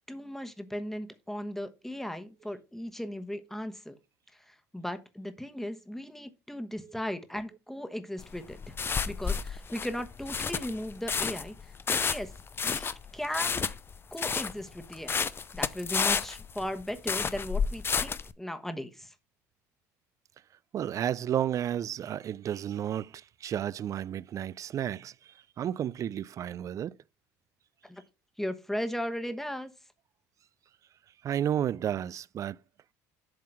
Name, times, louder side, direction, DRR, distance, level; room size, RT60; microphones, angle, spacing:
voice 1, 0.1-4.0 4.5-8.7 9.1-11.6 11.9-12.3 12.6-13.7 14.1-15.2 15.5-19.1 27.8-28.0 28.4-29.7, equal, 5° left, 1.1 m, -37 dB
sound 1, 8.2-18.3, left 6 dB, 30° left, 0.6 m, -31 dB
voice 2, 20.7-25.1 25.6-27.0 31.2-32.6, right 10 dB, 45° right, 0.3 m, -32 dB
7.7 x 3.7 x 5.9 m
supercardioid pair, 80°, 8 cm